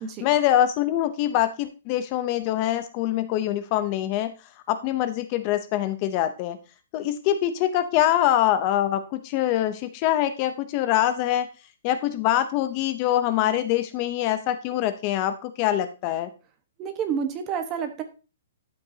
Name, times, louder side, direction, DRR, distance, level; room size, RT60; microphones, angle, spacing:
voice 1, 0.2-4.3 4.7-6.6 6.9-11.5 11.8-16.3, left 12 dB, 30° left, 11 dB, 0.6 m, -24 dB
voice 2, 16.8-18.0, right 7 dB, 20° right, 7 dB, 1.2 m, -29 dB
11.5 x 7.7 x 2.8 m, 0.32 s
hypercardioid pair, 165°, 0 cm